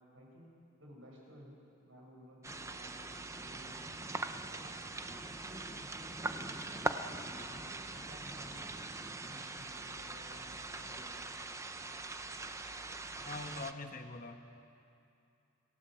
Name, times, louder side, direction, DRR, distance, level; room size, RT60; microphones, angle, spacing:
voice 1, 0.1-1.5 1.8-3.0 3.3-4.2 4.5-8.8 9.1-11.2, equal, 70° right, -2 dB, 7.0 m, -56 dB
sound 1, 2.4-13.7, right 2 dB, 15° right, 0.7 m, -42 dB
voice 2, 13.3-14.4, left 3 dB, 40° left, 5 dB, 1.3 m, -43 dB
26.5 x 18.0 x 7.8 m, 2.6 s
head